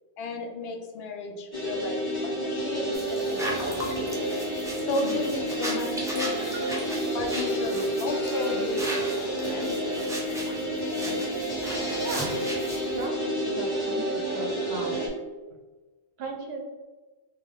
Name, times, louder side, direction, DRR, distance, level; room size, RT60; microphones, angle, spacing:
voice 1, 0.2-3.8 4.8-6.3 7.1-9.7, left 3 dB, 75° left, 4 dB, 0.8 m, -34 dB
sound 1, 1.5-15.1, right 1 dB, 25° left, 0.8 m, -29 dB
sound 2, 2.9-13.0, right 1 dB, 5° right, 0.4 m, -37 dB
voice 2, 12.0-12.5 12.9-15.3 16.2-16.8, right 2 dB, 80° right, 3 dB, 0.9 m, -37 dB
3.4 x 2.3 x 3.4 m, 1.2 s
omnidirectional pair, 1.1 m